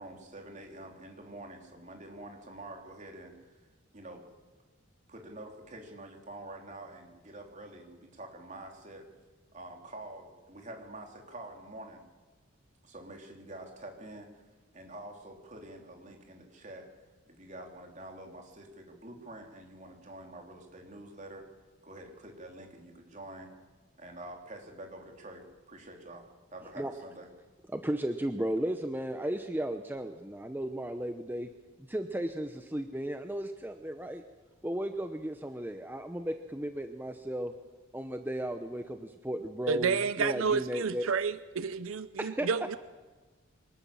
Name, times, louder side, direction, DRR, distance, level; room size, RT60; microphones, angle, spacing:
voice 1, 0.0-3.6 3.9-4.3 5.1-9.1 9.5-12.0 12.8-14.3 14.7-16.9 17.3-21.5 21.8-23.5 24.0-27.3, right 1 dB, 35° right, 2 dB, 3.4 m, -47 dB
voice 2, 27.7-31.5 31.9-34.2 34.6-37.5 37.9-41.0 42.2-42.5, right 1 dB, 10° right, 7 dB, 0.8 m, -35 dB
voice 3, 39.7-42.8, right 5 dB, 85° right, 15 dB, 0.6 m, -30 dB
24.0 x 19.0 x 7.2 m, 1.3 s
head